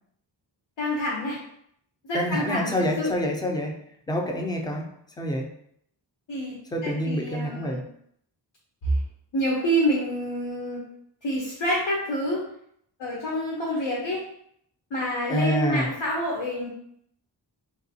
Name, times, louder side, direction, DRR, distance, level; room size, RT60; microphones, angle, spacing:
voice 1, 0.8-1.4 2.0-2.7 3.0-3.1 6.3-6.6 6.8-7.8 8.8-9.0 9.3-10.8 11.2-12.5 13.0-14.2 14.9-16.7, equal, 90° left, -3 dB, 0.8 m, -27 dB
voice 2, 2.1-4.9 5.2-5.5 6.7-7.8 15.3-15.9, equal, 10° left, 2 dB, 0.3 m, -27 dB
3.3 x 2.8 x 2.7 m, 0.70 s
wide cardioid pair, 135°, 43 cm